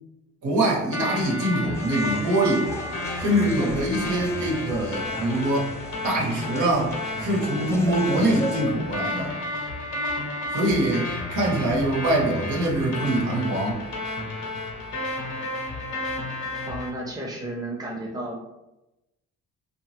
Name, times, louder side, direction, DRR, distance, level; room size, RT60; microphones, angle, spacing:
voice 1, 0.4-2.7 3.2-5.8 6.0-9.4 10.5-13.8, right 1 dB, 75° right, -2 dB, 0.9 m, -24 dB
sound 1, 0.9-16.9, left 2 dB, 70° left, 0.9 m, -32 dB
sound 2, 1.7-8.6, equal, 10° left, 0.3 m, -37 dB
voice 2, 16.7-18.4, right 1 dB, 10° right, -2 dB, 0.7 m, -32 dB
2.8 x 2.3 x 3.1 m, 0.95 s
cardioid pair, 90°, 30 cm